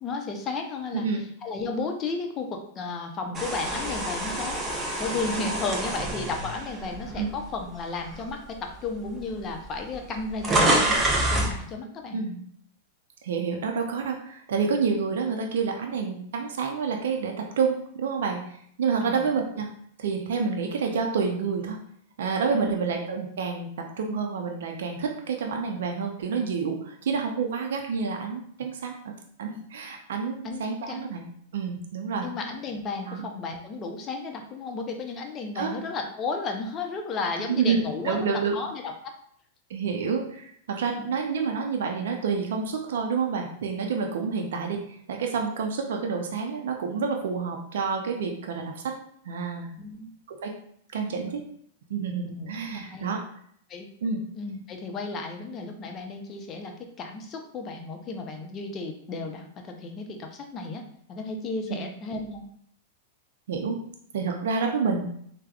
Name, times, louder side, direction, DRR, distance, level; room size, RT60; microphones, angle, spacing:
voice 1, 0.0-1.1 1.4-4.6 5.0-12.2 19.0-19.2 22.5-22.7 30.4-30.6 30.9-31.1 32.2-39.1 41.0-41.1 49.8-50.1 52.4-53.1 53.7-53.9 54.4-60.8 61.1-62.5, left 3 dB, 30° left, 4 dB, 0.5 m, -33 dB
sound 1, 3.3-7.6 8.1-8.3 9.2-9.3 9.5-11.6, right 1 dB, 20° right, 0.6 m, -27 dB
voice 2, 13.2-19.7 20.0-21.8 22.2-29.1 29.4-31.3 31.5-32.3 33.1-33.2 35.5-35.7 37.5-38.5 39.7-48.9 49.2-49.7 50.3-50.5 50.9-51.4 51.9-53.2 54.0-54.2 61.7-61.9 63.5-63.8 64.1-65.1, right 5 dB, 75° right, 2 dB, 0.4 m, -28 dB
3.4 x 2.0 x 2.3 m, 0.65 s
hypercardioid pair, 115°, 0 cm